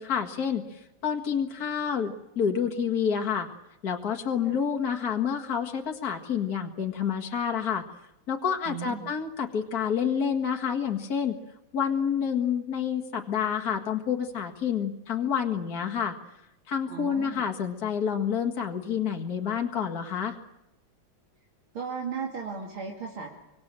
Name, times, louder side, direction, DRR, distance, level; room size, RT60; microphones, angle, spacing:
voice 1, 0.0-3.5 3.8-7.8 8.3-11.4 11.7-16.2 16.7-20.4, left 7 dB, 45° left, 3 dB, 2.3 m, -28 dB
voice 2, 8.7-9.1 16.9-17.5 21.7-23.3, right 6 dB, 75° right, -1 dB, 3.5 m, -36 dB
26.0 x 25.0 x 7.6 m, 0.89 s
omnidirectional pair, 2.3 m